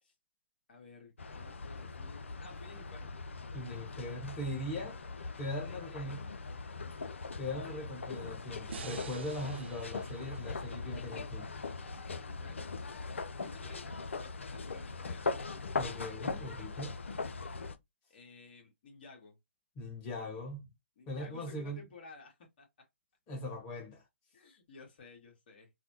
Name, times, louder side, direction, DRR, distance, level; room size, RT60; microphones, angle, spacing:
voice 1, 0.7-3.1 5.5-6.2 6.8-7.0 12.3-12.8 13.4-15.4 18.1-19.4 21.0-22.9 24.3-25.7, left 3 dB, 50° left, 1.5 m, -54 dB
sound 1, 1.2-17.8, left 4 dB, 75° left, 0.4 m, -40 dB
voice 2, 3.5-5.0 5.4-6.2 7.4-11.5 15.8-17.0 19.8-20.7 21.1-21.8 23.3-24.0, left 1 dB, 25° left, 1.4 m, -40 dB
sound 2, 8.7-11.9, right 7 dB, 60° right, 0.4 m, -50 dB
3.2 x 2.0 x 2.8 m
figure-of-eight pair, 130°, 7 cm